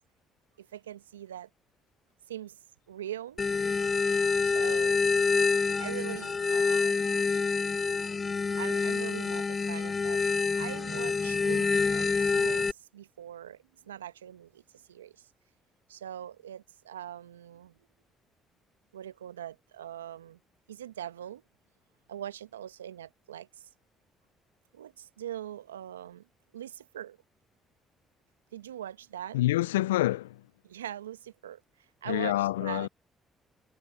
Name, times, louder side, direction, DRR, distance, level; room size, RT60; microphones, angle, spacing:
voice 1, 0.6-1.5 2.3-2.6 2.9-3.4 4.4-5.0 5.8-7.3 8.6-10.2 10.6-15.3 15.9-17.8 18.9-20.4 20.7-21.4 22.1-23.7 24.7-26.2 26.5-27.2 28.5-29.4 30.6-31.6 32.0-32.9, right 11 dB, 90° right, 1.2 m, -42 dB
sound 1, 3.4-12.7, left 4 dB, 35° left, 1.3 m, -27 dB
voice 2, 29.3-30.4 32.0-32.9, left 16 dB, 85° left, 0.5 m, -27 dB
hypercardioid pair, 45°, 0 cm